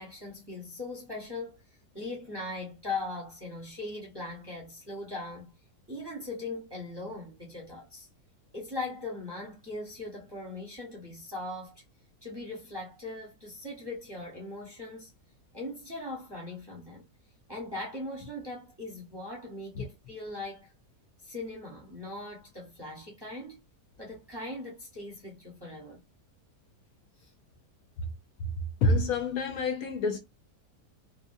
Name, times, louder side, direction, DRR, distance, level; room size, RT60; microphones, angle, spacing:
voice 1, 0.0-1.6 1.9-5.5 5.9-8.1 8.5-11.8 12.2-15.1 15.5-17.1 17.5-20.7 21.2-23.6 24.0-26.0 27.2-27.3, left 2 dB, 20° right, 0.8 m, -40 dB
voice 2, 28.8-30.2, left 2 dB, 65° left, 1.0 m, -27 dB
2.8 x 2.6 x 2.6 m
omnidirectional pair, 1.7 m